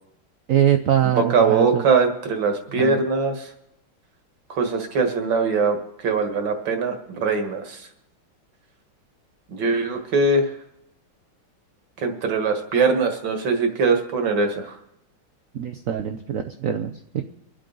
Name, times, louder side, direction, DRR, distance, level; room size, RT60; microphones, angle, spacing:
voice 1, 0.5-1.8 2.8-3.0 15.5-17.2, right 10 dB, 90° right, 6 dB, 0.7 m, -23 dB
voice 2, 1.1-3.5 4.5-6.9 7.2-7.8 9.5-10.5 12.0-14.8, right 4 dB, 65° right, 5 dB, 2.2 m, -21 dB
25.0 x 8.6 x 3.9 m, 0.83 s
omnidirectional pair, 2.2 m